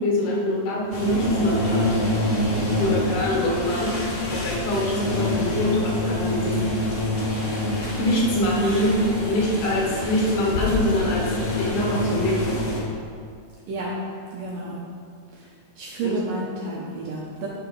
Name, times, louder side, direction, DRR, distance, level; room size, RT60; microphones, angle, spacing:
voice 1, 0.0-2.1 2.8-3.9 4.3-6.5 8.0-9.0 9.3-11.2 11.6-12.5 16.0-16.2, left 1 dB, 70° left, -3 dB, 3.4 m, -24 dB
sound 1, 0.9-12.8, left 1 dB, 55° left, 1.1 m, -26 dB
voice 2, 14.3-14.8 15.8-17.5, right 3 dB, 75° right, -4 dB, 2.2 m, -30 dB
9.4 x 5.9 x 5.4 m, 2.2 s
omnidirectional pair, 4.8 m